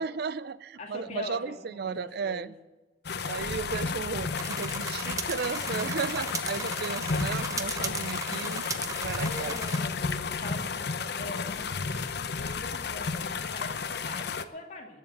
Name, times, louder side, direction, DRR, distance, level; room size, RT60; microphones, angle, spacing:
voice 1, 0.0-2.5 3.2-8.6 9.0-9.5, right 5 dB, 60° right, 16 dB, 0.4 m, -34 dB
voice 2, 0.8-2.6 9.2-15.0, left 2 dB, 40° left, 0 dB, 2.6 m, -42 dB
sound 1, 3.0-14.4, left 5 dB, 65° left, 0.8 m, -32 dB
sound 2, 4.3-9.8, right 4 dB, 20° right, 0.8 m, -37 dB
20.0 x 7.4 x 7.2 m, 1.2 s
head